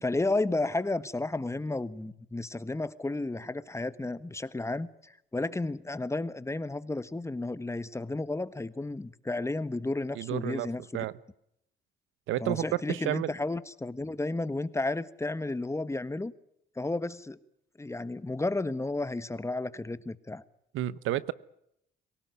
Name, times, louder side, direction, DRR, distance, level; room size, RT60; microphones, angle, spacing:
voice 1, 0.0-11.1 12.4-16.3 16.8-17.4 17.8-20.4, left 2 dB, 15° left, 14 dB, 1.4 m, -32 dB
voice 2, 10.2-10.7 10.9-11.1 12.3-13.3 20.7-21.3, right 14 dB, 90° right, 18 dB, 1.0 m, -31 dB
23.5 x 18.0 x 9.6 m, 0.77 s
cardioid pair, 90°, 20 cm